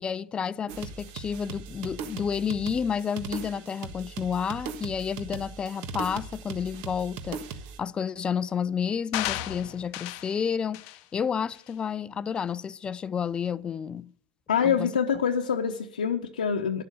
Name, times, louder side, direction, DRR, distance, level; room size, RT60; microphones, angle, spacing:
voice 1, 0.0-7.4 7.8-10.8 11.1-14.1 14.6-14.9, left 7 dB, 20° left, 0.5 m, -30 dB
sound 1, 0.7-7.8, right 5 dB, 55° right, 1.4 m, -39 dB
sound 2, 9.1-10.4 10.7-11.0 11.6-11.7, left 15 dB, 55° left, 0.8 m, -34 dB
voice 2, 14.5-16.8, left 7 dB, 85° left, 1.0 m, -25 dB
11.5 x 7.6 x 8.5 m
hypercardioid pair, 105°, 4 cm